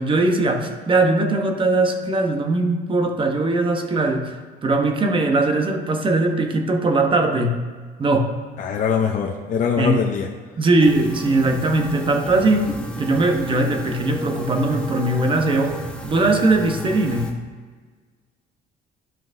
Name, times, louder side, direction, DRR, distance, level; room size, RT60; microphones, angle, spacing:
voice 1, 0.0-4.4 4.6-7.6 8.0-8.3 9.8-10.1 10.6-12.7 13.0-17.4, right 2 dB, 30° right, 4 dB, 1.0 m, -20 dB
voice 2, 8.6-10.3, left 7 dB, 50° left, 0 dB, 0.7 m, -22 dB
sound 1, 10.8-17.3, left 1 dB, 5° left, 1.1 m, -32 dB
12.5 x 5.7 x 2.7 m, 1.5 s
cardioid pair, 110°, 17 cm